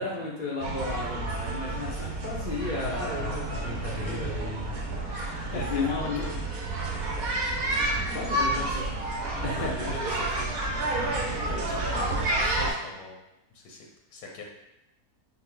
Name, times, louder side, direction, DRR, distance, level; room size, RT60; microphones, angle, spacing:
voice 1, 0.0-5.3 5.5-6.2 8.1-8.9 9.4-10.0 10.4-10.5, left 3 dB, 55° left, -4 dB, 0.5 m, -34 dB
sound 1, 0.6-12.7, right 2 dB, 70° right, 1.2 m, -30 dB
voice 2, 5.3-6.3 7.1-7.3 9.3-13.2 13.5-14.4, left 2 dB, 80° left, 0 dB, 1.2 m, -41 dB
5.7 x 2.1 x 3.8 m, 0.90 s
omnidirectional pair, 1.6 m